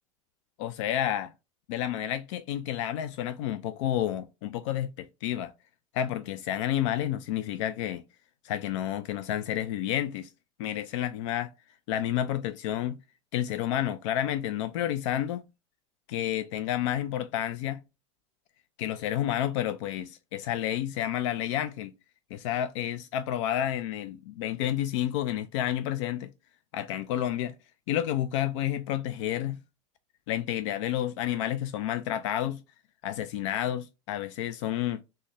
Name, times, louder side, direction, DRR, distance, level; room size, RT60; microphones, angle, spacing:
voice 1, 0.6-1.3 1.7-5.5 5.9-8.0 8.4-10.3 10.6-11.5 11.9-13.0 13.3-15.4 16.1-17.8 18.8-21.9 22.3-26.3 26.7-27.5 27.9-29.6 30.3-32.6 33.0-35.0, left 11 dB, 70° left, 0.4 m, -30 dB
3.8 x 2.1 x 3.5 m
hypercardioid pair, 105°, 16 cm